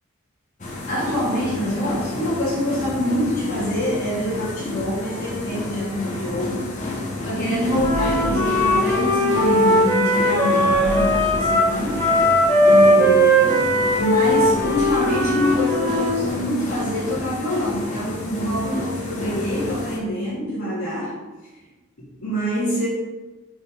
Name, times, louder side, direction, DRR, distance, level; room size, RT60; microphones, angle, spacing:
sound 1, 0.6-20.0, left 2 dB, 35° left, 1.0 m, -30 dB
voice 1, 0.9-6.8 7.2-12.0 12.6-13.5 14.0-21.2 22.2-22.9, equal, 70° left, -11 dB, 2.0 m, -25 dB
Wind instrument woodwind instrument, 7.8-16.2, equal, 10° left, 1.6 m, -18 dB
5.5 x 3.9 x 5.0 m, 1.2 s
head